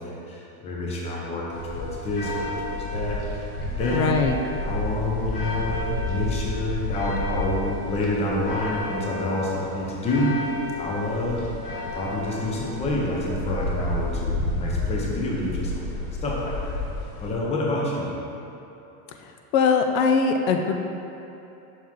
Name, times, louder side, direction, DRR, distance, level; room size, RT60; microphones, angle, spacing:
voice 1, 0.0-4.1 4.6-10.3 10.8-11.4 11.9-16.8 17.2-18.1, left 1 dB, 15° left, -3 dB, 0.5 m, -28 dB
sound 1, 1.5-17.3, left 2 dB, 45° left, 1.0 m, -31 dB
voice 2, 3.9-4.3 19.5-20.7, left 5 dB, 65° left, 5 dB, 0.5 m, -21 dB
5.8 x 4.5 x 3.6 m, 2.9 s
supercardioid pair, 145°, 45 cm